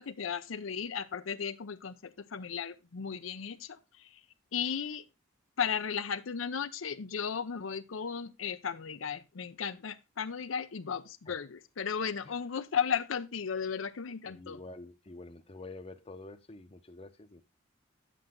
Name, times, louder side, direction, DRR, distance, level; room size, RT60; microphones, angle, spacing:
voice 1, 0.0-4.2 4.5-5.0 5.6-14.6, left 7 dB, 80° left, 0.6 m, -35 dB
voice 2, 14.2-17.4, left 2 dB, 30° left, 0.7 m, -48 dB
8.9 x 7.7 x 3.7 m
head